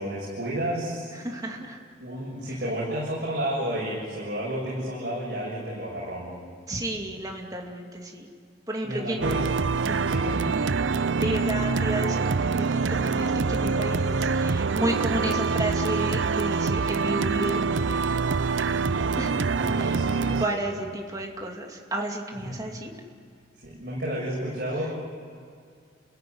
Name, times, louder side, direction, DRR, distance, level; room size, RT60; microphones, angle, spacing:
voice 1, 0.0-1.4 2.0-6.4 8.8-9.5 10.0-10.5 19.4-20.6 22.4-22.6 23.6-25.0, right 1 dB, 60° right, -6 dB, 7.1 m, -31 dB
voice 2, 1.2-1.8 6.7-8.3 8.7-9.4 9.8-10.1 11.2-17.9 19.2-19.3 19.8-20.0 20.4-22.9, right 1 dB, 20° right, 1 dB, 2.5 m, -32 dB
sound 1, 9.2-20.5, right 4 dB, 85° right, 0.6 m, -25 dB
29.5 x 16.0 x 9.5 m, 2.2 s
head